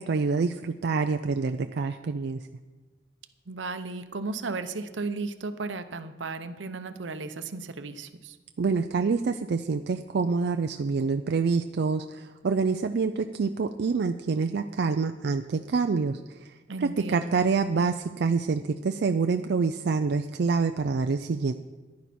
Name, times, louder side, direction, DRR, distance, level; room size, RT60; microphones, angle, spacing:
voice 1, 0.0-2.4 8.6-16.5 16.8-21.5, right 4 dB, 60° right, 7 dB, 0.4 m, -26 dB
voice 2, 3.5-8.4 16.7-17.5, right 3 dB, 85° right, 10 dB, 0.8 m, -35 dB
14.5 x 10.5 x 4.3 m, 1.2 s
head